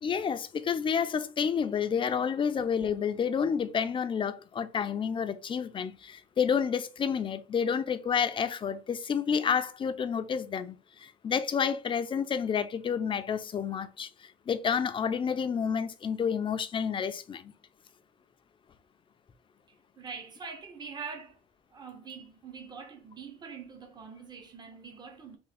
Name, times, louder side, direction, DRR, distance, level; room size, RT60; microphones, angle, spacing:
voice 1, 0.0-17.5, left 7 dB, 30° left, 0.4 m, -30 dB
voice 2, 20.0-21.4 21.7-25.4, right 5 dB, 25° right, 0.7 m, -44 dB
3.5 x 2.5 x 3.4 m
cardioid pair, 110°, 17 cm